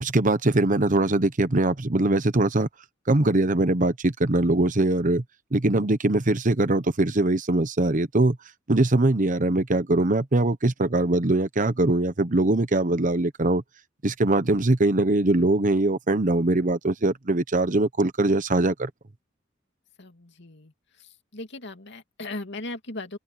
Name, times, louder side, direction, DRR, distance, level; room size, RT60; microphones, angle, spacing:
voice 1, 0.0-2.7 3.1-5.2 5.5-8.4 8.7-13.6 14.0-18.9, right 2 dB, 40° right, 1.0 m, -22 dB
voice 2, 20.0-20.7 21.3-23.2, left 2 dB, 60° left, 2.7 m, -37 dB
head